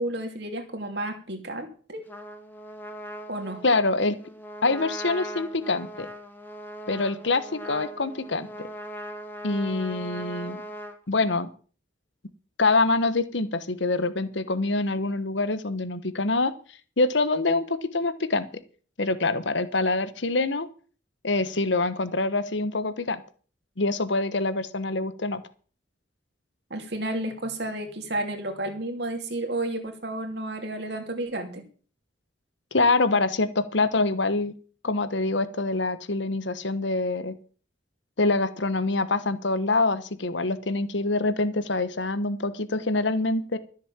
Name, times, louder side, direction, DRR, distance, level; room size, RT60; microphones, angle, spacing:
voice 1, 0.0-2.0 3.3-3.6 26.7-31.6, right 1 dB, 60° right, 5 dB, 2.7 m, -32 dB
Trumpet, 2.1-11.0, equal, 10° left, 1.6 m, -39 dB
voice 2, 3.6-4.2 4.6-6.1 6.9-8.7 9.4-10.6 11.1-11.5 12.6-16.5 17.0-18.5 19.0-20.7 21.2-23.2 23.8-25.4 32.7-34.5 34.8-37.3 38.2-43.6, left 3 dB, 70° left, 14 dB, 1.2 m, -25 dB
13.5 x 7.3 x 7.3 m, 0.41 s
head